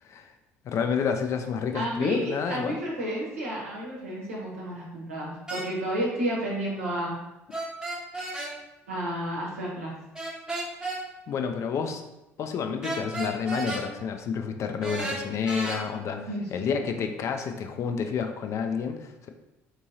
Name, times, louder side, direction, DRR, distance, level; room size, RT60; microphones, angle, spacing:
voice 1, 0.6-2.8 11.3-12.0 12.4-19.3, left 6 dB, 40° left, 6 dB, 0.4 m, -29 dB
voice 2, 1.7-7.2 8.9-9.9 16.3-16.5, right 1 dB, 80° right, -5 dB, 1.1 m, -31 dB
sound 1, 5.5-5.7 7.5-8.5 10.2-11.0 12.8-13.8 14.8-15.8, right 2 dB, 10° right, 0.9 m, -32 dB
4.4 x 2.9 x 2.8 m, 0.94 s
figure-of-eight pair, 60°, 7 cm